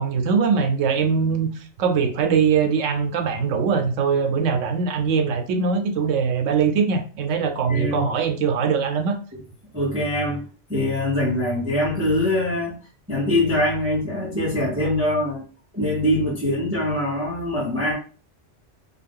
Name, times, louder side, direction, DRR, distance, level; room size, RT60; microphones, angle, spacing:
voice 1, 0.0-1.5 1.8-9.2, right 6 dB, 85° right, 0.9 m, -21 dB
voice 2, 7.7-8.1 9.3-9.4 9.7-10.4 10.7-12.8 13.1-15.4 15.7-17.9, left 1 dB, 15° right, 0.6 m, -23 dB
2.4 x 2.3 x 3.5 m
omnidirectional pair, 1.3 m